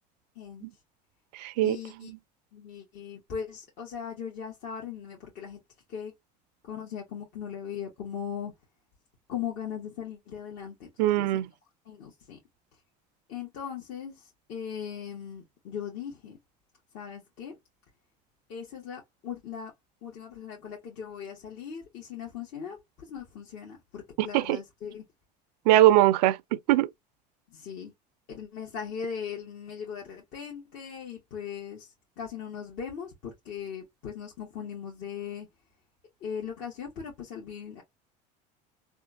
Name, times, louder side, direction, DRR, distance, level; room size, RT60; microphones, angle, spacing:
voice 1, 0.3-0.7 1.6-2.1 2.5-5.6 5.9-6.1 6.6-8.5 9.3-11.3 11.8-12.4 13.3-16.4 16.9-17.6 18.5-19.7 20.0-25.0 27.5-27.9 28.3-35.5 36.2-37.8, left 7 dB, 65° left, 1.4 m, -39 dB
voice 2, 1.4-2.2 11.0-11.5 24.2-24.6 25.7-26.4 26.7-26.9, right 14 dB, 80° right, 0.4 m, -21 dB
3.5 x 2.3 x 2.6 m
hypercardioid pair, 80°, 21 cm